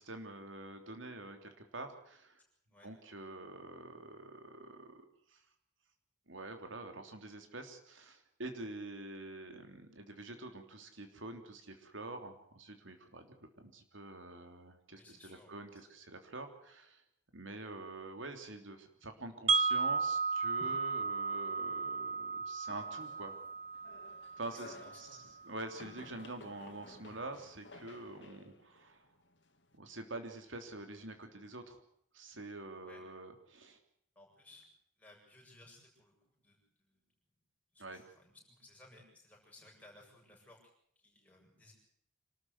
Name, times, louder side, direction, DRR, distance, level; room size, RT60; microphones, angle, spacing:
voice 1, 0.0-2.4 2.8-5.0 5.3-5.4 6.3-17.0 17.3-23.4 24.4-25.1 25.4-29.1 29.8-31.8 32.1-33.8 37.8-38.0, right 2 dB, 70° right, 6 dB, 3.3 m, -46 dB
voice 2, 14.9-15.9 24.5-25.4 32.8-33.0 34.2-34.7 35.0-37.0 37.7-40.6 41.0-41.7, left 2 dB, 10° left, -1 dB, 7.6 m, -60 dB
Wind chime, 19.5-25.5, right 5 dB, 30° right, 0.8 m, -35 dB
sound 1, 22.7-29.8, left 3 dB, 60° left, 2.3 m, -56 dB
26.5 x 13.5 x 8.1 m, 0.68 s
head